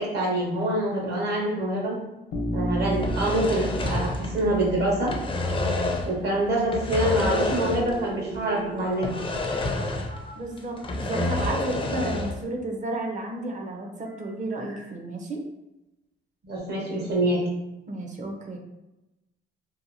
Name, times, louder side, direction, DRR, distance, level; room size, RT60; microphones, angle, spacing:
voice 1, 0.0-2.0 2.5-5.2 6.0-9.2 16.4-17.4, right 1 dB, 55° right, -3 dB, 1.1 m, -25 dB
Bass guitar, 2.3-6.3, right 1 dB, 75° left, 0.7 m, -33 dB
sound 1, 2.9-4.7 4.9-6.2 6.7-8.1 8.3-8.4 9.0-10.3 10.6-12.4, left 2 dB, 25° left, 0.4 m, -28 dB
sound 2, 7.2-10.3 14.0-14.9, right 7 dB, 70° right, 0.8 m, -41 dB
voice 2, 10.3-15.5 17.9-18.6, right 2 dB, 40° right, 1 dB, 0.6 m, -32 dB
2.8 x 2.3 x 2.6 m, 0.97 s
cardioid pair, 90°, 20 cm